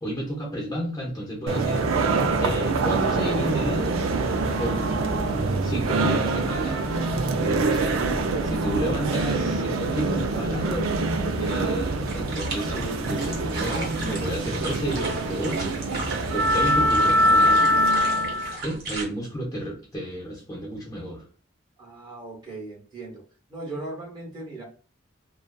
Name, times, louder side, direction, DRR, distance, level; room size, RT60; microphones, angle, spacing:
voice 1, 0.0-1.8 2.4-4.1 4.5-6.9 7.4-8.0 8.4-10.9 11.4-15.8 16.3-17.6 18.6-21.2, right 1 dB, 15° left, -3 dB, 0.6 m, -31 dB
sound 1, 1.5-18.6, right 2 dB, 90° right, 0.4 m, -24 dB
sound 2, 2.1-17.5, left 1 dB, 75° left, 0.6 m, -37 dB
sound 3, 12.1-19.0, right 3 dB, 50° right, 0.7 m, -36 dB
voice 2, 21.8-23.2 23.5-24.6, right 2 dB, 20° right, -2 dB, 0.8 m, -38 dB
2.5 x 2.3 x 2.2 m, 0.37 s
head